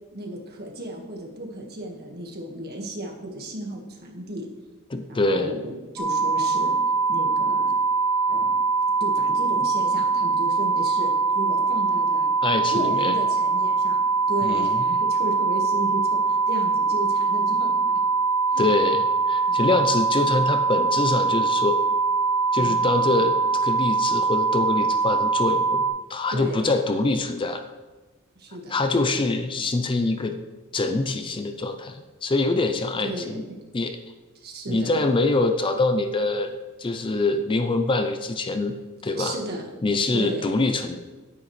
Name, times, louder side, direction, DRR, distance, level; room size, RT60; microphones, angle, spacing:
voice 1, 0.1-4.5 5.1-6.8 7.1-7.8 8.3-8.5 9.0-12.3 12.7-17.8 18.5-18.7 19.5-19.7 22.6-22.9 26.3-26.7 28.4-28.8 33.0-33.6 34.3-34.9 39.2-39.6 40.1-40.6, right 1 dB, 50° right, 0 dB, 1.6 m, -34 dB
voice 2, 4.9-5.5 12.4-13.2 14.4-14.8 18.6-21.8 22.5-25.8 26.1-27.6 28.7-30.4 30.7-33.4 33.7-34.0 34.7-36.5 36.8-38.8 39.0-39.3 39.8-41.0, left 2 dB, 25° left, 7 dB, 0.5 m, -24 dB
sound 1, 6.0-25.9, right 4 dB, 10° right, 1.7 m, -22 dB
9.9 x 9.4 x 3.2 m, 1.2 s
head